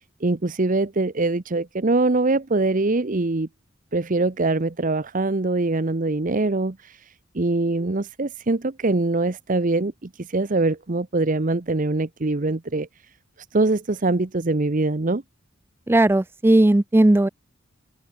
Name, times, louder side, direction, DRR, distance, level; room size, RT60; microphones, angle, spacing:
voice 1, 0.2-3.5 3.9-7.0 7.3-12.9 13.5-15.2, right 2 dB, 40° right, 0.9 m, -23 dB
voice 2, 15.9-17.3, right 1 dB, 10° right, 0.4 m, -17 dB
head